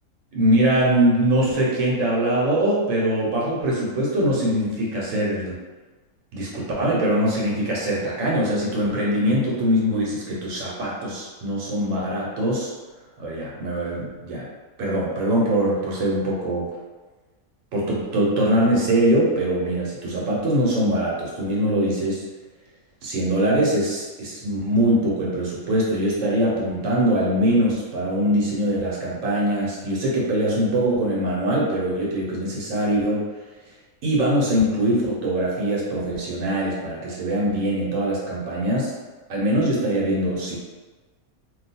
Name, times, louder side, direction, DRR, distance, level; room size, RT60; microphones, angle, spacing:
voice 1, 0.3-5.6 6.3-12.7 13.2-14.4 14.8-16.7 17.7-22.2 23.0-33.2 34.0-38.9 39.3-40.6, right 1 dB, 60° right, -5 dB, 1.2 m, -22 dB
2.6 x 2.3 x 4.1 m, 1.3 s
omnidirectional pair, 1.6 m